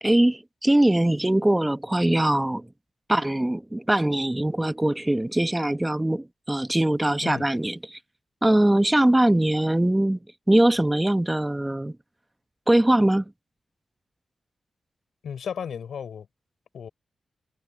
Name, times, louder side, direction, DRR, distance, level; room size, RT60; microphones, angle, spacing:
voice 1, 0.0-2.7 3.1-8.0 8.4-10.2 10.5-12.0 12.7-13.2, right 1 dB, 15° right, 1.0 m, -22 dB
voice 2, 15.2-16.3 16.7-16.9, left 7 dB, 85° left, 4.3 m, -34 dB
cardioid pair, 50°, 0 cm